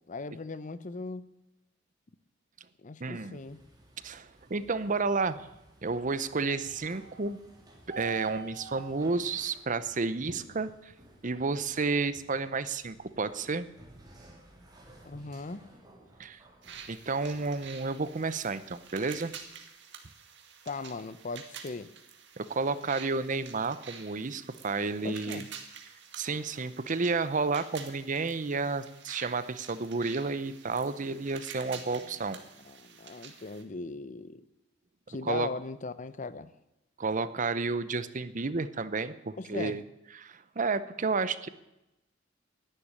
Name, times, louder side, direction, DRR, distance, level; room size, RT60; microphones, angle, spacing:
voice 1, 0.1-1.3 2.8-3.6 15.0-15.7 20.7-21.9 25.0-25.5 31.6-32.1 32.6-34.4 35.1-36.5 39.4-39.8, left 3 dB, 40° left, 14 dB, 0.7 m, -39 dB
voice 2, 3.0-3.4 4.0-5.5 5.8-7.4 7.9-10.9 11.2-13.7 16.2-16.4 16.9-19.3 22.4-25.4 26.2-32.4 35.2-35.5 37.0-39.8 40.1-41.5, right 4 dB, 40° right, 14 dB, 0.7 m, -31 dB
sound 1, 3.3-19.5, right 5 dB, 20° right, 3.6 m, -50 dB
sound 2, 16.6-33.6, right 7 dB, 65° right, 2.0 m, -49 dB
11.5 x 10.5 x 9.8 m, 0.92 s
head